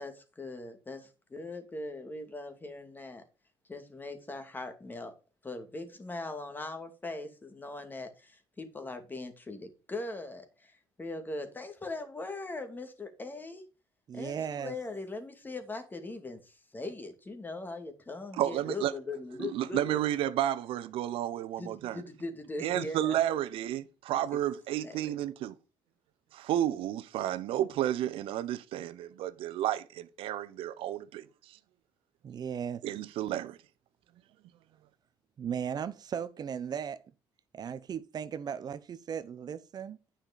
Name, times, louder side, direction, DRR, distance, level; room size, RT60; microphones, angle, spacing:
voice 1, 0.0-3.2 3.7-5.2 5.4-10.7 11.0-13.6 14.1-20.0 21.6-23.2 24.8-25.1, left 2 dB, 20° left, 2.4 m, -40 dB
voice 2, 14.1-14.7 32.2-32.8 35.4-37.0 37.5-40.0, right 8 dB, 45° right, 0.8 m, -36 dB
voice 3, 18.4-18.9 19.4-22.0 22.6-25.5 26.3-31.2 32.8-33.6, right 12 dB, 75° right, 0.9 m, -31 dB
10.0 x 5.8 x 5.2 m
cardioid pair, 100°, 9 cm